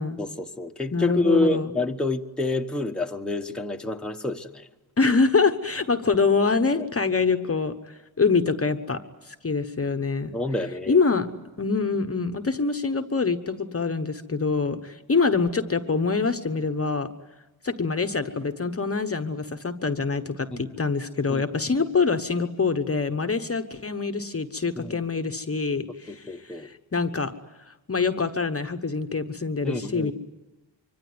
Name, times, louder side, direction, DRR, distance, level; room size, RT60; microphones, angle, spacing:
voice 1, 0.2-4.7 6.7-6.9 10.3-11.0 20.5-20.7 21.3-21.5 24.8-25.0 26.1-26.7 29.6-30.1, left 2 dB, ahead, 2 dB, 1.1 m, -28 dB
voice 2, 0.9-1.7 5.0-9.0 9.3-10.3 10.9-11.3 11.6-17.1 17.6-27.3 27.7-30.1, left 4 dB, 30° left, 8 dB, 1.1 m, -25 dB
25.0 x 24.5 x 9.6 m, 1.1 s
wide cardioid pair, 145°, 47 cm